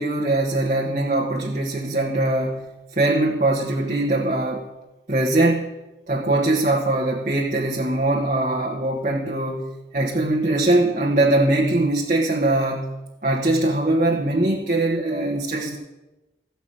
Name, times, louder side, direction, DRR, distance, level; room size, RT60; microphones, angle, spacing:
voice 1, 0.0-4.7 5.1-5.7 6.1-12.9 13.2-15.8, right 2 dB, 45° right, -2 dB, 1.3 m, -22 dB
15.0 x 5.9 x 8.6 m, 1.1 s
head